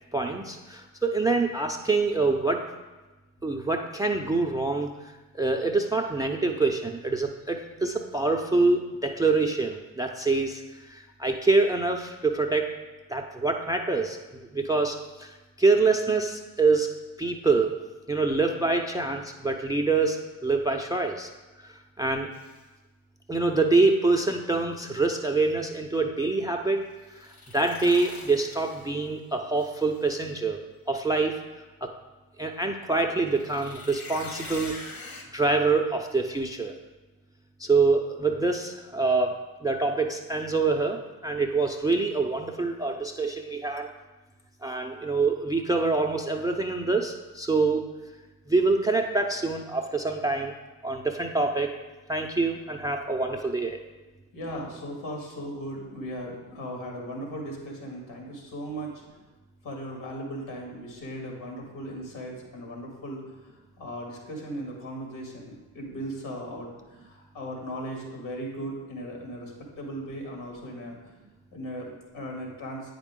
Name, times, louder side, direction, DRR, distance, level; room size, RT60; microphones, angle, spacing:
voice 1, 0.1-2.6 3.4-12.7 13.1-17.8 18.1-21.3 21.6-22.3 23.3-26.8 27.1-30.6 30.9-31.4 31.8-31.9 32.4-34.7 35.3-36.7 37.6-39.3 39.6-43.9 44.6-47.8 48.5-50.5 50.8-51.7 52.1-53.8, right 3 dB, 10° right, 3 dB, 0.5 m, -25 dB
sound 1, 22.3-22.6 27.0-29.1 29.6-30.2 33.2-35.2, left 3 dB, 45° left, 1.5 m, -44 dB
voice 2, 54.3-59.0 59.6-71.0 71.5-72.9, equal, 65° left, 0 dB, 2.5 m, -37 dB
8.7 x 5.1 x 3.7 m, 1.2 s
hypercardioid pair, 60°, 48 cm